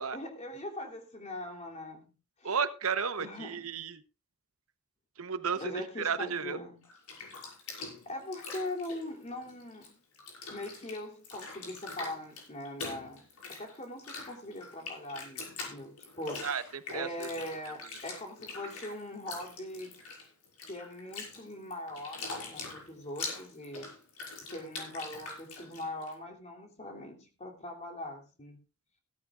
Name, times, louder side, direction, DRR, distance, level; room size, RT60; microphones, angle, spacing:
voice 1, 0.1-2.6 3.2-3.7 5.6-6.8 8.0-10.0 10.5-16.5 16.9-20.1 20.7-23.9 24.5-28.6, left 1 dB, 30° left, 3.1 m, -41 dB
voice 2, 2.4-4.0 5.2-6.6 16.4-17.3 17.6-17.7, right 6 dB, 70° right, 1.0 m, -33 dB
Bathtub (filling or washing), 6.8-9.9 10.1-26.1, left 3 dB, 90° left, 6.1 m, -43 dB
17.0 x 13.5 x 2.5 m
head